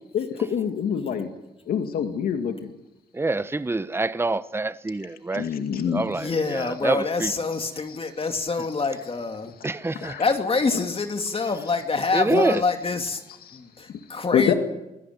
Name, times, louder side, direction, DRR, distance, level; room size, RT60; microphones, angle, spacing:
voice 1, 0.1-1.3 1.7-2.7 5.3-6.1 6.4-6.6 7.5-8.0 8.6-8.7 10.0-10.3 10.6-11.3 12.0-12.6 13.0-13.6 14.3-14.5, left 8 dB, 85° left, 2.2 m, -27 dB
voice 2, 3.1-5.5 5.9-7.3 9.6-10.2 12.1-12.6, right 2 dB, 15° right, 0.9 m, -26 dB
voice 3, 6.1-9.5 10.2-13.2 13.5-14.5, left 4 dB, 40° left, 2.5 m, -26 dB
24.0 x 16.5 x 9.4 m
cardioid pair, 75°, 15 cm